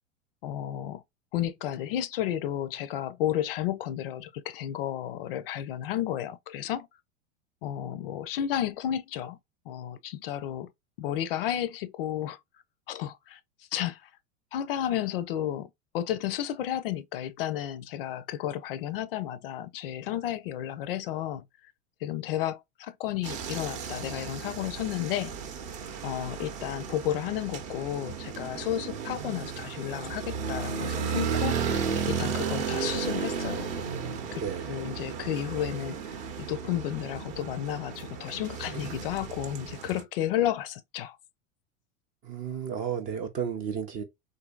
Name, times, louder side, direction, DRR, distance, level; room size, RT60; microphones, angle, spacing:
voice 1, 0.4-1.0 1.3-6.9 7.6-9.4 9.7-10.7 11.0-12.4 12.9-13.4 13.7-14.1 14.5-21.4 22.0-25.3 26.0-33.7 34.3-34.4 34.7-36.0 36.4-41.2, left 11 dB, 50° left, 0.4 m, -32 dB
sound 1, 23.2-40.0, right 6 dB, 40° right, 0.7 m, -34 dB
voice 2, 34.4-34.8 42.2-44.0, right 7 dB, 25° right, 0.4 m, -33 dB
3.9 x 2.7 x 2.2 m
figure-of-eight pair, 90°, 39 cm